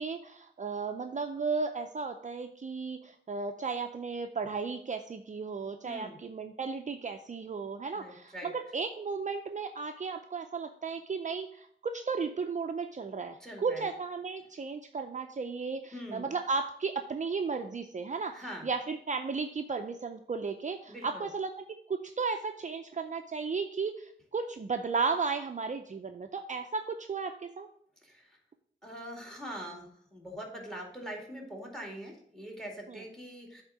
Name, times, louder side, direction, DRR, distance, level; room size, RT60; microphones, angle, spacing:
voice 1, 0.0-21.5 21.9-27.7, right 4 dB, 40° right, 5 dB, 0.5 m, -34 dB
voice 2, 5.8-6.2 7.9-8.5 13.4-13.9 15.9-16.2 18.3-18.7 20.9-21.3 28.0-28.4 28.8-33.6, equal, ahead, 1 dB, 2.2 m, -43 dB
8.1 x 3.6 x 6.2 m, 0.65 s
wide cardioid pair, 95°, 20 cm